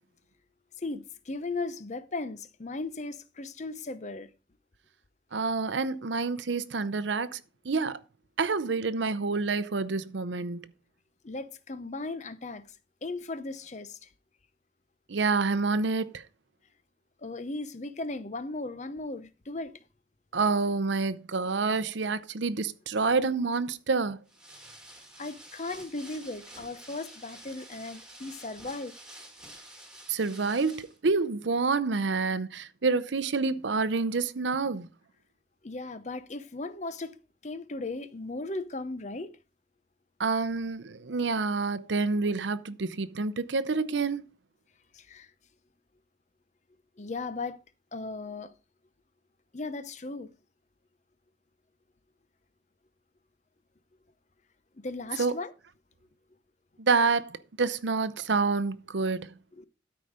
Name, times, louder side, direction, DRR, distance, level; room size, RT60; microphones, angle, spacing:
voice 1, 0.8-4.3 11.2-12.7 13.0-14.1 17.2-19.8 25.2-28.9 35.6-37.2 37.4-39.3 44.9-45.3 47.0-47.6 47.9-48.6 49.5-50.3 54.8-55.5 59.5-59.6, left 3 dB, 40° left, 0.7 m, -37 dB
voice 2, 5.3-8.0 8.4-10.7 15.1-16.2 20.3-24.2 30.1-34.9 40.2-44.2 55.2-55.3 56.8-59.3, right 4 dB, 80° right, 0.7 m, -28 dB
sound 1, 24.3-31.0, right 1 dB, 5° right, 2.0 m, -49 dB
13.0 x 4.9 x 5.1 m
head